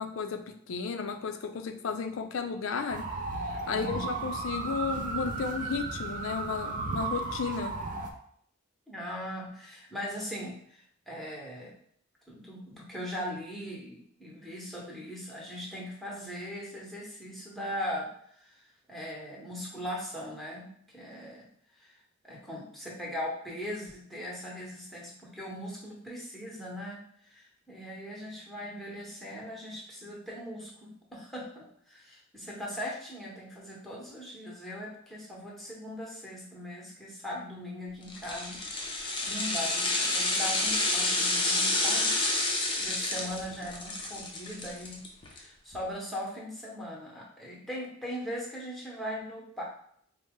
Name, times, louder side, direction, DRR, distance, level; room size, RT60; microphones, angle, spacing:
voice 1, 0.0-3.1 3.5-7.8, left 5 dB, 70° left, 7 dB, 0.4 m, -33 dB
sound 1, 2.9-8.1, right 3 dB, 40° right, 0.4 m, -35 dB
voice 2, 3.7-4.2 8.9-10.8 11.1-11.7 12.3-18.1 18.4-18.6 18.9-21.5 21.8-21.9 22.2-42.1 42.5-45.0 45.3-49.6, equal, ahead, -4 dB, 0.9 m, -40 dB
sound 2, 38.1-45.4 45.7-45.8, left 2 dB, 25° left, 0.6 m, -29 dB
4.0 x 2.0 x 3.6 m, 0.66 s
head